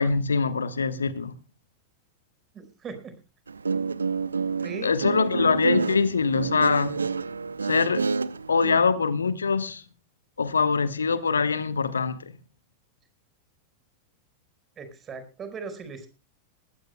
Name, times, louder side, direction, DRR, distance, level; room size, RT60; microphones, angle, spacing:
voice 1, 0.0-1.3 4.8-7.0 7.6-8.0 8.5-9.8 10.4-12.2, left 5 dB, 75° left, 1.2 m, -23 dB
voice 2, 2.5-3.1 4.6-4.9 14.8-16.1, right 5 dB, 25° right, 4.9 m, -38 dB
Guitar, 3.5-8.8, right 4 dB, 75° right, 0.7 m, -28 dB
20.5 x 16.0 x 2.2 m
figure-of-eight pair, 90°, 0 cm